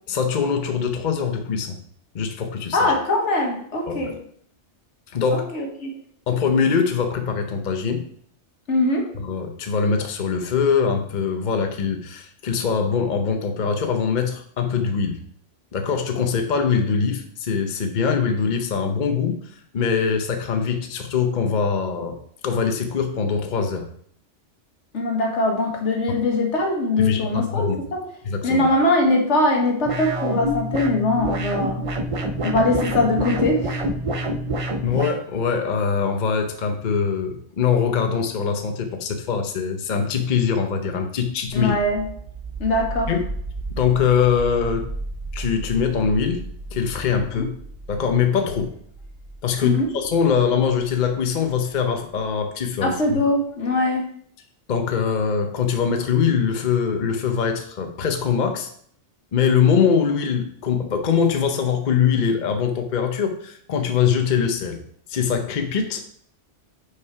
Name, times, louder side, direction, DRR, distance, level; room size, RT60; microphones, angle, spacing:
voice 1, 0.1-1.8 2.1-2.9 3.9-4.1 5.1-5.5 6.3-8.0 9.2-15.2 15.7-22.2 22.4-23.9 26.1-26.2 27.0-27.8 28.3-28.6 34.8-41.7 43.1-43.2 43.8-44.8 45.3-46.4 46.7-47.5 47.9-48.7 49.4-53.0 54.7-58.7 59.3-64.8 65.1-66.0, left 6 dB, 45° left, 5 dB, 0.8 m, -22 dB
voice 2, 2.7-4.1 5.3-5.9 8.7-9.0 24.9-28.0 28.4-31.8 32.4-33.8 41.5-42.0 42.6-43.1 47.3-47.5 49.6-49.9 52.8-54.0, left 2 dB, 70° left, 2 dB, 1.6 m, -21 dB
sound 1, 29.9-35.2, right 1 dB, 40° right, 0.5 m, -26 dB
sound 2, 41.5-52.2, right 2 dB, 65° right, 1.5 m, -35 dB
5.8 x 4.9 x 4.7 m, 0.62 s
omnidirectional pair, 1.2 m